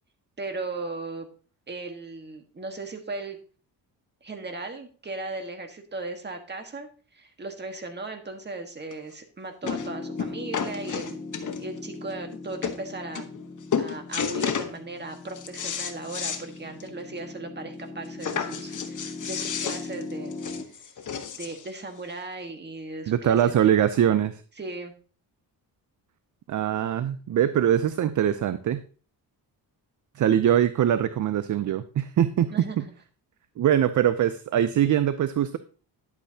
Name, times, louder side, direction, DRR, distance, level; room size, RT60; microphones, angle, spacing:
voice 1, 0.4-1.3 1.7-3.4 4.2-13.3 13.8-20.4 21.4-23.7 24.6-24.9 32.5-32.9, right 2 dB, 25° right, 5 dB, 1.5 m, -37 dB
sound 1, 8.9-9.0 9.7-9.9 10.2-11.8 12.3-12.4 12.6-12.8 13.1-13.5 13.7-14.7 15.1-16.4 16.8-16.9 17.2-17.3 18.2-21.7 22.5-22.6, left 7 dB, 45° left, 1.1 m, -31 dB
Piano, 9.6-20.6, left 3 dB, 15° left, 1.8 m, -39 dB
voice 2, 23.1-24.4 26.5-28.8 30.2-32.8 33.6-35.6, right 10 dB, 50° right, 13 dB, 0.5 m, -22 dB
10.5 x 8.1 x 2.8 m, 0.39 s
cardioid pair, 110°, 41 cm